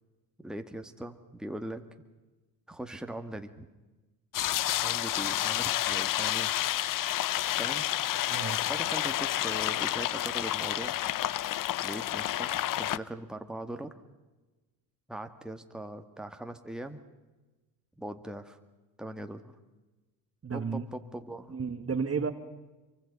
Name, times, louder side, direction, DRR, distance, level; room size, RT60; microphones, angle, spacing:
voice 1, 0.4-1.8 2.7-3.7 4.8-6.5 7.6-7.9 8.7-11.0 11.8-12.5 12.8-13.9 15.1-17.0 18.0-18.6 19.0-19.6 20.5-21.6, right 1 dB, ahead, 6 dB, 2.0 m, -40 dB
sound 1, 4.3-13.0, left 13 dB, 40° left, 0.7 m, -30 dB
voice 2, 8.3-8.6 20.4-20.8 21.5-22.3, right 5 dB, 30° right, 8 dB, 1.8 m, -32 dB
25.5 x 24.0 x 5.5 m, 1.2 s
hypercardioid pair, 65°, 50 cm